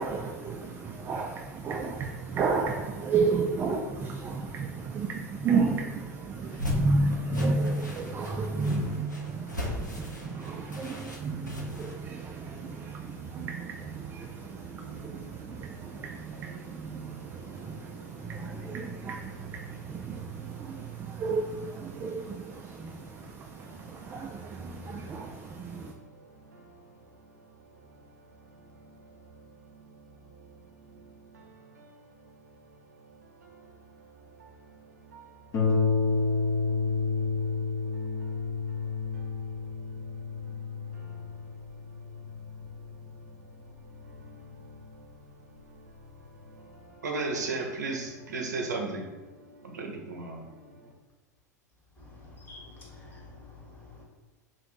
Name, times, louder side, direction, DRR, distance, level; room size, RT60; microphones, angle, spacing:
voice 1, 0.0-25.9, right 4 dB, 20° right, 2 dB, 0.3 m, -32 dB
voice 2, 1.0-2.4 3.8-3.9 4.4-5.0 6.4-6.8 8.2-8.7 9.3-13.7 14.0-21.2 21.8-50.9, right 3 dB, 75° right, 2 dB, 0.6 m, -44 dB
sound 1, 6.4-11.9, left 2 dB, 90° left, 0.7 m, -37 dB
Harp, 35.5-44.7 45.6-45.7 46.1-46.2, left 4 dB, 40° left, 0.9 m, -30 dB
voice 3, 52.0-54.0, left 3 dB, 20° left, -3 dB, 1.3 m, -49 dB
3.0 x 2.5 x 4.2 m, 1.2 s
figure-of-eight pair, 85°, 9 cm